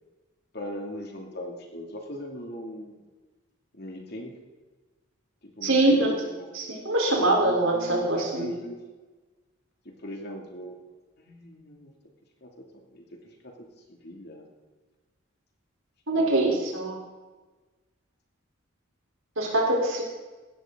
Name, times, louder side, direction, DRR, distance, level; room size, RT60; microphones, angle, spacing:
voice 1, 0.5-3.0 3.8-4.3 5.6-6.8 7.1-8.8 10.0-10.7 11.2-11.9 12.4-12.5 12.9-13.0 14.0-14.4 16.1-16.4, equal, 50° left, 1 dB, 2.7 m, -39 dB
voice 2, 5.6-6.1 6.5-8.5 16.1-17.0 19.4-20.0, right 2 dB, 80° right, -1 dB, 4.1 m, -23 dB
16.5 x 12.5 x 4.0 m, 1.3 s
head